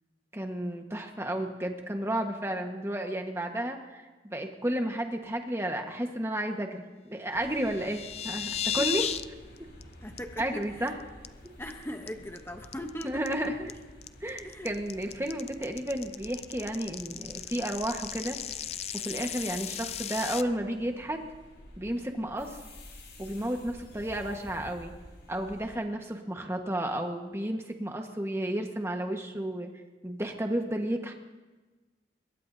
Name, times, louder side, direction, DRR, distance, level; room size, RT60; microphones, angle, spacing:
voice 1, 0.3-9.0 10.4-10.9 13.0-13.7 14.2-18.4 18.9-21.2 21.8-22.6 23.2-24.9 25.3-29.7 30.0-31.1, right 1 dB, 15° right, 3 dB, 1.4 m, -32 dB
sound 1, 7.3-25.7, equal, 65° left, 5.5 m, -51 dB
sound 2, 7.6-9.2 9.6-9.8 10.2-10.3 10.6-10.9 11.2-11.7 12.1-20.4, left 10 dB, 35° left, 0.5 m, -35 dB
voice 2, 8.8-9.1 10.0-10.9 11.6-13.2 14.4-14.7, equal, 15° left, 4 dB, 0.9 m, -39 dB
23.5 x 22.0 x 2.8 m, 1.3 s
head